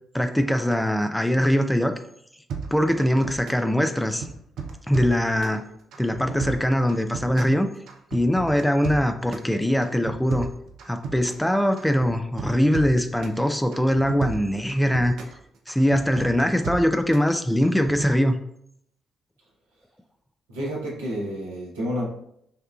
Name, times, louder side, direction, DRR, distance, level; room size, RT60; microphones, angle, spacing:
voice 1, 0.1-1.9 2.7-4.3 4.9-5.6 6.0-7.7 8.1-10.5 10.9-15.1 15.7-18.3, equal, 5° left, 7 dB, 0.3 m, -22 dB
sound 1, 2.5-3.7 4.0-5.6 5.9-7.6 7.9-9.5 9.8-11.5 11.8-13.4 13.7-15.4 15.7-17.3 17.6-18.1, right 6 dB, 60° right, 0.5 m, -34 dB
voice 2, 20.5-22.1, equal, 80° right, -5 dB, 0.9 m, -29 dB
5.4 x 2.4 x 2.3 m, 0.72 s
figure-of-eight pair, 40°, 0 cm